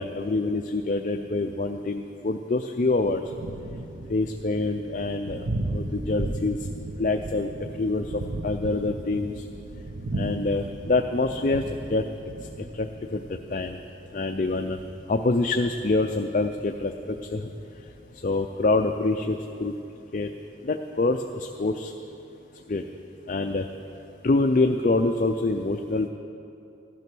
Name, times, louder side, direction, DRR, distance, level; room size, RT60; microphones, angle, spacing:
voice 1, 0.0-3.2 4.1-5.5 5.7-6.6 7.0-9.4 10.1-11.6 11.9-12.0 12.7-13.8 14.1-14.8 15.1-17.4 18.2-19.7 20.1-20.3 20.6-21.9 22.7-22.8 23.3-23.7 24.2-26.1, left 2 dB, 40° left, 5 dB, 0.5 m, -26 dB
Thunder, 3.0-18.2, right 1 dB, 80° right, 0.9 m, -36 dB
15.5 x 11.0 x 6.1 m, 2.8 s
head